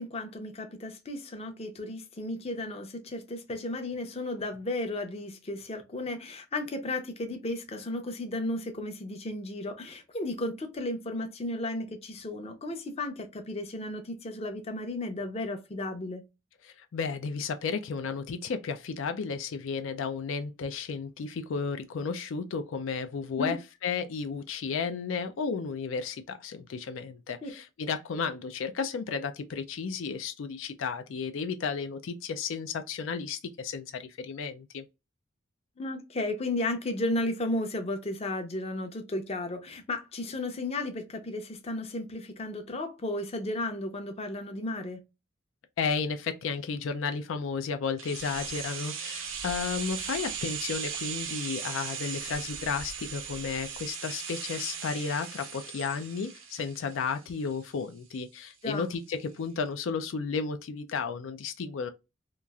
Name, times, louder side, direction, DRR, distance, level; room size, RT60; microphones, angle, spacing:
voice 1, 0.0-16.2 23.4-23.6 27.4-27.5 35.8-45.0 58.6-58.9, left 2 dB, 30° left, 0.6 m, -34 dB
voice 2, 16.6-34.8 45.8-61.9, left 5 dB, 80° left, 0.4 m, -33 dB
sound 1, 48.0-57.8 58.1-58.2, right 7 dB, 90° right, 0.8 m, -38 dB
2.9 x 2.4 x 2.3 m
head